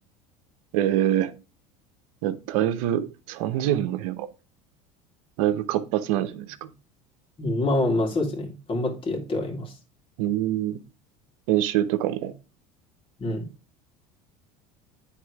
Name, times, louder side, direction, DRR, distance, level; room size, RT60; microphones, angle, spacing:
voice 1, 0.7-1.3 2.2-4.3 5.4-6.7 10.2-10.8 11.5-12.3, right 12 dB, 80° right, 12 dB, 0.9 m, -25 dB
voice 2, 7.4-9.7 13.2-13.4, left 2 dB, 30° left, 0 dB, 2.3 m, -26 dB
9.4 x 3.7 x 4.7 m, 0.31 s
supercardioid pair, 100°, 18 cm